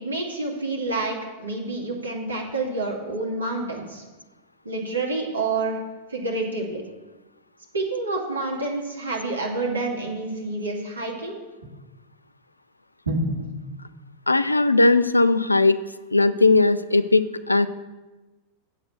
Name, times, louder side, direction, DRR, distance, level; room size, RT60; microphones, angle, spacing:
voice 1, 0.0-4.0 4.6-5.8 6.1-6.8 7.7-11.4 13.1-13.6, right 2 dB, 75° right, 0 dB, 2.1 m, -28 dB
voice 2, 14.3-15.8 16.1-17.7, left 3 dB, 85° left, 13 dB, 0.4 m, -18 dB
7.8 x 6.6 x 8.0 m, 1.2 s
figure-of-eight pair, 90°, 0 cm